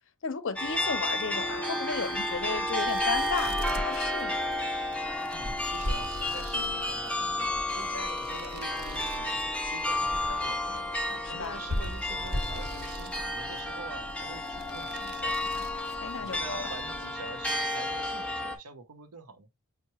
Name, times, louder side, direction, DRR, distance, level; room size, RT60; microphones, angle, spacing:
voice 1, 0.2-4.4 11.1-11.6 16.0-16.7, left 5 dB, 60° left, 0.6 m, -34 dB
sound 1, 0.6-18.6, left 1 dB, 5° left, 0.6 m, -32 dB
sound 2, 1.9-17.5, right 1 dB, 45° right, 0.4 m, -45 dB
sound 3, 5.1-14.5, left 1 dB, 60° right, 1.1 m, -39 dB
voice 2, 5.3-19.5, right 3 dB, 85° right, 0.7 m, -46 dB
5.5 x 2.1 x 3.0 m
head